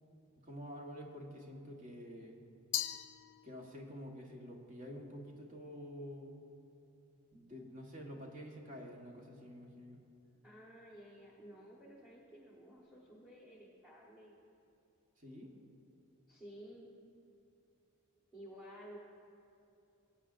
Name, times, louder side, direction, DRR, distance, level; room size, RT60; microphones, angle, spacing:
voice 1, 0.3-2.4 3.4-6.5 7.3-10.0 15.2-15.5, equal, 35° right, 0 dB, 1.2 m, -49 dB
Glass, 2.7-4.0, left 12 dB, 55° left, 0.4 m, -40 dB
voice 2, 10.4-14.4 16.3-16.9 18.3-19.0, equal, 5° right, -4 dB, 1.2 m, -54 dB
22.0 x 8.5 x 2.5 m, 2.7 s
head